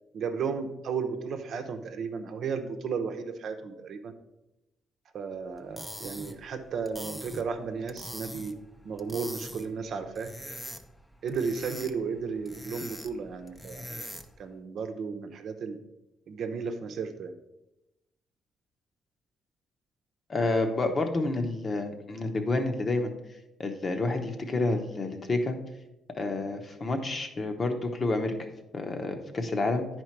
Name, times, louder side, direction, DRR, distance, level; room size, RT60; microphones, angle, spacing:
voice 1, 0.1-4.1 5.1-8.5 8.8-10.3 11.2-14.0 14.4-15.8 16.3-17.3, right 5 dB, 65° right, 6 dB, 0.8 m, -34 dB
sound 1, 5.6-14.5, equal, 5° left, 0.7 m, -43 dB
voice 2, 20.3-23.1 23.6-25.6 26.2-28.3 28.7-29.9, left 2 dB, 35° left, 5 dB, 1.0 m, -29 dB
9.8 x 4.5 x 4.6 m, 0.93 s
cardioid pair, 90°, 0 cm